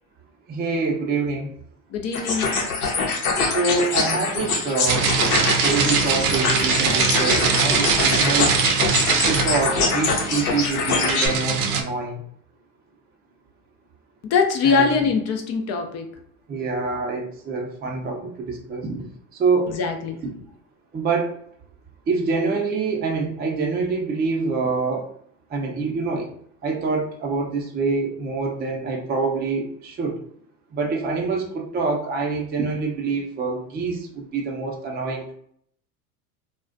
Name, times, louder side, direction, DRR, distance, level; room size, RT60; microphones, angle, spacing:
voice 1, 0.5-1.5 3.4-5.1 5.6-8.6 9.2-12.2 14.6-14.8 16.5-19.0 19.3-19.7 20.9-21.4 22.1-25.1 25.5-26.3 26.6-30.2 30.7-35.3, right 4 dB, 25° right, 0.5 m, -25 dB
voice 2, 1.9-2.6 14.2-16.2 19.7-20.2, left 5 dB, 40° left, 0.4 m, -22 dB
sound 1, 2.1-11.3, left 4 dB, 90° left, 0.8 m, -24 dB
sound 2, 4.9-11.8, right 5 dB, 85° right, 0.5 m, -22 dB
2.4 x 2.1 x 2.4 m
hypercardioid pair, 90°, 42 cm